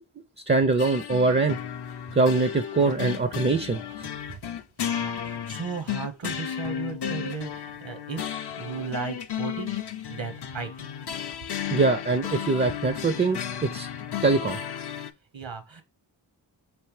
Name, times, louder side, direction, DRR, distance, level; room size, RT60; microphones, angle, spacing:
voice 1, 0.5-1.6 2.1-3.8 11.7-13.9 14.2-14.6, right 3 dB, 25° right, 0.4 m, -23 dB
sound 1, 0.8-15.1, left 9 dB, 55° left, 0.5 m, -33 dB
voice 2, 4.8-9.8 10.1-11.0 15.3-15.8, right 5 dB, 70° right, 1.0 m, -36 dB
3.3 x 3.0 x 4.8 m
wide cardioid pair, 55°, 47 cm